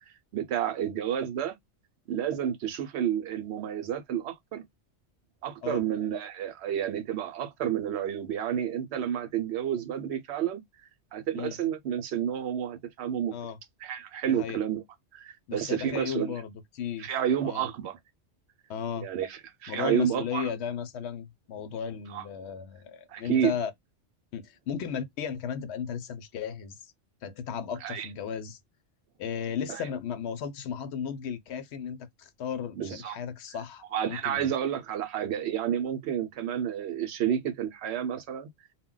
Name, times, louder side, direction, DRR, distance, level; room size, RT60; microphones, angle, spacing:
voice 1, 0.3-1.6 2.1-4.6 5.4-10.6 11.1-13.3 13.8-14.8 15.1-16.3 17.0-18.0 19.0-20.5 22.1-22.2 23.1-23.5 27.8-28.1 29.7-29.8 32.8-33.2 33.9-38.5, right 9 dB, 70° right, 0.8 m, -30 dB
voice 2, 14.3-14.6 15.5-17.2 17.4-17.7 18.7-19.1 19.7-23.7 24.3-26.9 27.2-28.6 29.2-34.5, left 7 dB, 75° left, 0.8 m, -35 dB
2.2 x 2.1 x 3.6 m
omnidirectional pair, 1.2 m